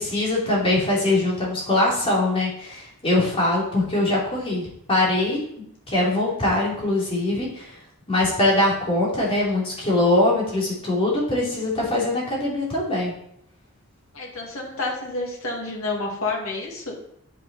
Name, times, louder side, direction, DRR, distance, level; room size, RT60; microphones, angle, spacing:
voice 1, 0.0-5.4 5.9-7.8 8.1-13.1, left 2 dB, 25° left, -5 dB, 2.9 m, -22 dB
voice 2, 14.1-16.9, left 3 dB, 70° left, -1 dB, 2.2 m, -29 dB
9.1 x 5.9 x 4.1 m, 0.72 s
head